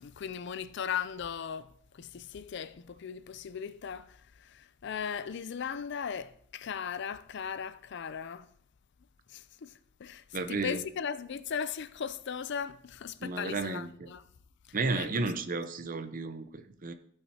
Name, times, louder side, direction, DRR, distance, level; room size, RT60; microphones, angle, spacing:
voice 1, 0.0-8.5 9.3-14.2 14.9-15.1, left 7 dB, 60° left, 0.4 m, -38 dB
voice 2, 10.3-10.8 13.2-14.1 14.7-16.9, right 3 dB, 45° right, 0.6 m, -33 dB
15.0 x 5.7 x 2.8 m
head